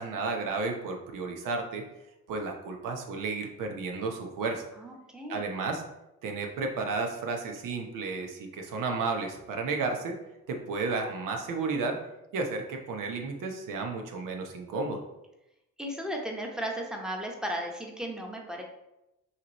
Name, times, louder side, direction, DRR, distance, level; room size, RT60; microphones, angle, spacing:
voice 1, 0.0-1.8 2.3-4.6 5.3-5.8 6.2-10.2 10.5-12.0 12.3-15.0, right 3 dB, 70° right, 3 dB, 0.9 m, -32 dB
voice 2, 4.8-5.4 15.8-18.6, equal, ahead, 1 dB, 1.0 m, -35 dB
5.8 x 3.0 x 3.0 m, 0.92 s
supercardioid pair, 70°, 33 cm